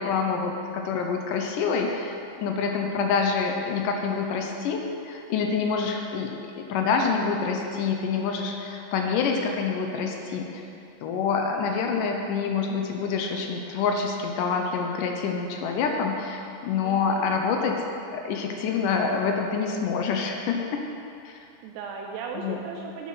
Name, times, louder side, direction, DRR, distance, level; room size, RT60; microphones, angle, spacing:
voice 1, 0.0-10.6 11.0-17.8 18.1-20.8 21.3-21.4 22.4-22.6, left 5 dB, 80° left, 2 dB, 1.9 m, -27 dB
voice 2, 16.8-17.4 21.6-23.1, right 5 dB, 85° right, 1 dB, 2.8 m, -37 dB
11.0 x 8.1 x 5.6 m, 2.7 s
omnidirectional pair, 4.8 m